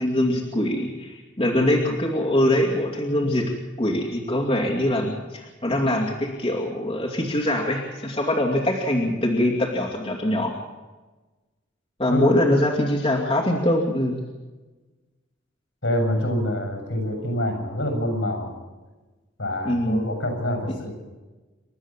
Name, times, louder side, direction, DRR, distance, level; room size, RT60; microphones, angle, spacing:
voice 1, 0.0-3.5 3.8-10.5 12.0-14.2 19.6-20.0, left 1 dB, 30° left, -1 dB, 2.5 m, -23 dB
voice 2, 15.8-18.5 19.4-20.9, left 1 dB, 75° left, 3 dB, 6.8 m, -26 dB
28.5 x 12.5 x 7.3 m, 1.2 s
head